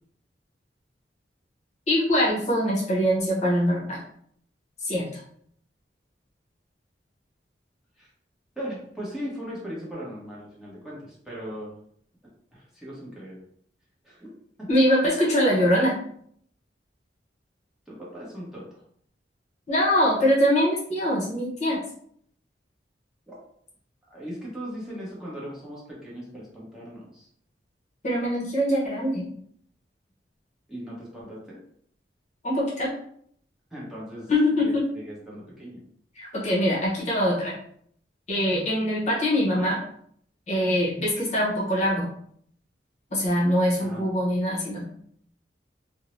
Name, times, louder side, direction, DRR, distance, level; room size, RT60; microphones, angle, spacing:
voice 1, 1.9-4.0 4.8-5.2 14.7-16.0 19.7-21.8 28.0-29.3 32.4-32.9 34.3-34.8 36.2-37.5 38.3-39.8 40.5-42.1 43.1-44.8, equal, 40° left, -5 dB, 0.8 m, -23 dB
voice 2, 8.6-11.7 12.5-13.4 14.0-14.3 14.6-14.7 17.9-18.8 23.3-23.4 24.1-27.3 30.7-31.6 33.7-34.3 34.6-35.8 43.8-44.0, equal, 5° right, -7 dB, 0.9 m, -38 dB
2.6 x 2.0 x 3.0 m, 0.65 s
head